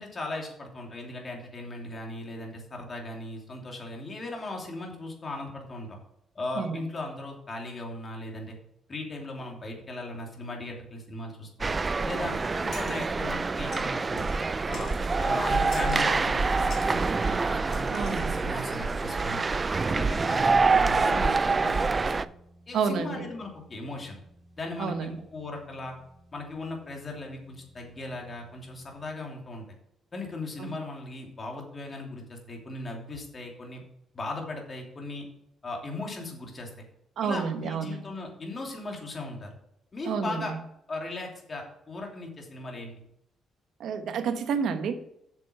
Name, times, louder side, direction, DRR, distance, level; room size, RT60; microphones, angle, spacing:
voice 1, 0.0-6.0 6.3-8.6 8.9-11.7 12.0-14.3 14.7-14.9 15.2-19.4 19.9-22.3 22.7-24.2 24.6-25.9 26.3-29.7 30.1-33.8 34.1-35.2 35.6-36.7 37.2-39.5 39.9-40.5 40.9-42.9, left 2 dB, 35° left, 1 dB, 2.9 m, -38 dB
sound 1, 11.6-22.3, right 4 dB, 30° right, 0.4 m, -26 dB
sound 2, 11.9-29.1, right 2 dB, 10° right, 3.8 m, -51 dB
sound 3, 12.7-13.1 13.7-14.4 14.7-15.2 15.7-16.1 16.7-17.0 17.7-18.3, left 6 dB, 60° left, 1.7 m, -47 dB
voice 2, 17.9-18.4 22.7-23.3 24.8-25.1 30.6-30.8 37.2-38.0 40.1-40.6 43.8-44.9, right 6 dB, 70° right, 7 dB, 1.2 m, -30 dB
8.3 x 6.8 x 5.8 m, 0.78 s
cardioid pair, 90°, 0 cm